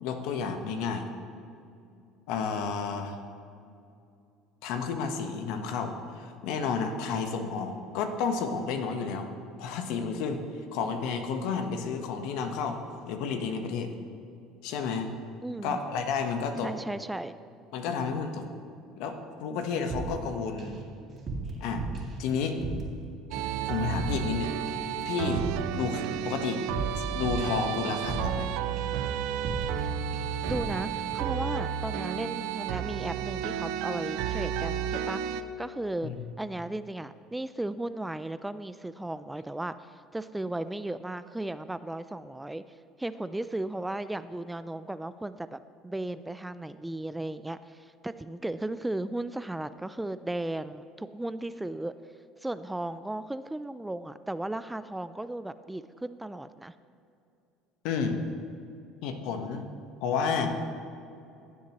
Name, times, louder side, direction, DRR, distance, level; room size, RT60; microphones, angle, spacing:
voice 1, 0.0-1.1 2.3-3.2 4.6-9.3 9.6-10.4 10.7-12.8 13.1-13.9 14.6-15.1 15.6-16.7 17.7-18.4 19.0-20.8 21.6-21.8 22.2-22.6 23.6-24.5 25.0-25.4 25.7-26.6 26.9-28.5 36.0-36.2 57.8-58.2 59.0-59.7 60.0-60.6, left 5 dB, 75° left, 6 dB, 1.0 m, -31 dB
voice 2, 15.4-15.8 16.6-17.4 30.5-36.1 36.4-42.6 43.0-51.9 52.4-56.7, right 1 dB, 10° right, 13 dB, 0.3 m, -35 dB
sound 1, 19.9-20.8 21.1-23.0 23.3-23.6 23.9-24.4 24.7-28.5 28.8-29.1 29.4-29.9 30.1-30.8, right 3 dB, 45° right, 2.3 m, -36 dB
sound 2, 23.3-35.4, right 9 dB, 75° right, 0.4 m, -32 dB
16.0 x 7.3 x 3.0 m, 2.6 s
supercardioid pair, 90°, 0 cm